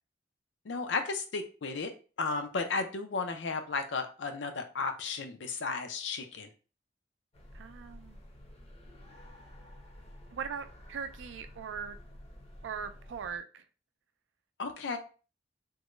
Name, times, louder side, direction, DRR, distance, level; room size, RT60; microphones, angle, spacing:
voice 1, 0.7-1.9 2.2-6.5 14.6-15.0, left 4 dB, 80° left, 0.5 m, -34 dB
sound 1, 7.3-13.4, equal, 35° left, 0.6 m, -51 dB
voice 2, 7.5-8.2 10.3-12.0 12.6-13.6, right 6 dB, 90° right, 0.4 m, -40 dB
3.6 x 2.1 x 3.0 m
head